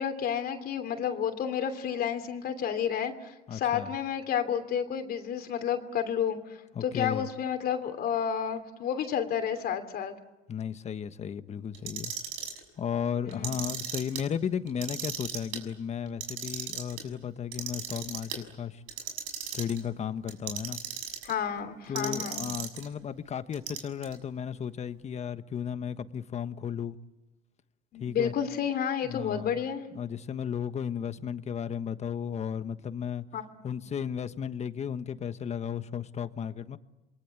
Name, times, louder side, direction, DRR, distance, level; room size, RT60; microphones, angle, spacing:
voice 1, 0.0-10.1 13.2-13.6 21.2-22.5 27.9-29.9 33.3-33.4, left 8 dB, 50° left, 3.1 m, -31 dB
voice 2, 3.5-3.9 6.7-7.3 10.5-12.1 12.8-18.8 19.5-20.8 21.9-27.0 28.0-28.3 29.0-29.6 29.9-33.2 33.6-36.8, left 8 dB, 35° left, 1.3 m, -34 dB
Clock, 11.7-12.6 13.3-14.2 14.7-15.6 16.1-17.0 17.5-18.4 18.9-19.8 20.3-21.3 22.0-22.9 23.5-24.1, right 8 dB, 90° right, 6.3 m, -36 dB
28.0 x 22.5 x 8.5 m
cardioid pair, 120°, 20 cm